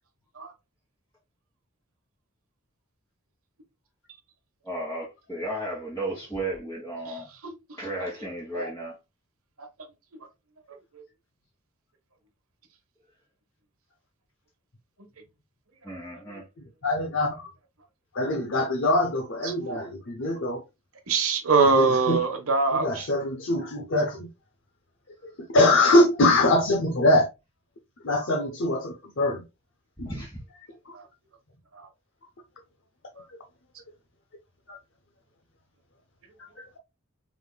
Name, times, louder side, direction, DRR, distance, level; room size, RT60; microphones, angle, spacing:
voice 1, 4.6-7.3 7.8-9.0 15.8-16.4 30.0-30.4, right 1 dB, 10° left, 1.3 m, -34 dB
voice 2, 16.8-17.5 18.1-20.6 21.8-22.2 22.7-24.3 25.5-27.3 28.0-29.4 30.0-30.1 30.9-31.0 34.7-34.8 36.6-36.7, left 1 dB, 55° left, 0.7 m, -23 dB
voice 3, 19.4-19.9 21.1-23.1 30.9-31.0, right 4 dB, 80° right, 1.1 m, -23 dB
4.9 x 3.6 x 2.2 m
head